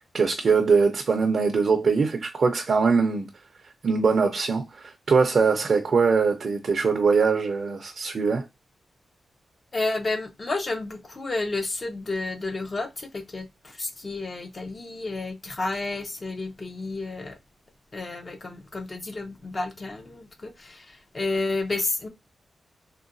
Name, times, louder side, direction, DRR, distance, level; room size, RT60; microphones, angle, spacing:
voice 1, 0.1-3.3 3.8-8.4, right 5 dB, 60° right, 0.5 m, -22 dB
voice 2, 9.7-17.4 17.9-22.1, left 2 dB, 35° left, 0.5 m, -31 dB
3.8 x 2.2 x 2.5 m
cardioid pair, 85°, 0 cm